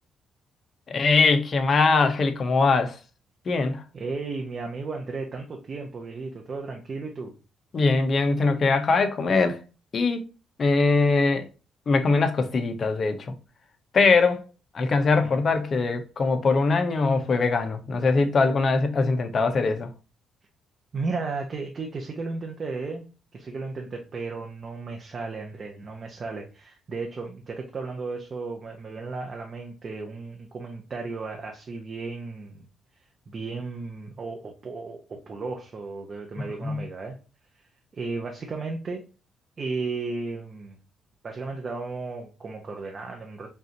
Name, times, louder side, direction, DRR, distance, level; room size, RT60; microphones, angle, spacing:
voice 1, 0.9-3.0 3.5-3.8 7.7-9.6 9.9-10.3 10.6-11.5 11.9-13.3 13.9-14.4 14.7-19.9 36.6-36.8, left 4 dB, 45° left, 0.8 m, -22 dB
voice 2, 3.9-7.3 15.2-15.4 20.9-23.1 23.3-32.7 33.3-37.2 37.9-39.0 39.6-40.7 41.2-43.5, right 3 dB, 40° right, 0.8 m, -34 dB
5.4 x 2.6 x 2.8 m
cardioid pair, 90°, 0 cm